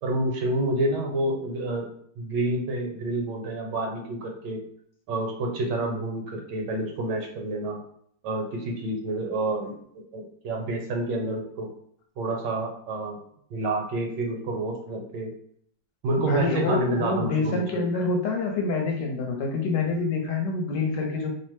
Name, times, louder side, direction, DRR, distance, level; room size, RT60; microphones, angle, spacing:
voice 1, 0.0-1.9 2.2-4.6 5.1-7.8 8.2-11.7 12.2-13.2 13.5-15.3 16.0-17.8, right 2 dB, 75° right, 2 dB, 1.2 m, -28 dB
voice 2, 16.3-21.3, left 3 dB, 75° left, 1 dB, 1.2 m, -26 dB
3.0 x 2.0 x 3.0 m, 0.65 s
omnidirectional pair, 2.0 m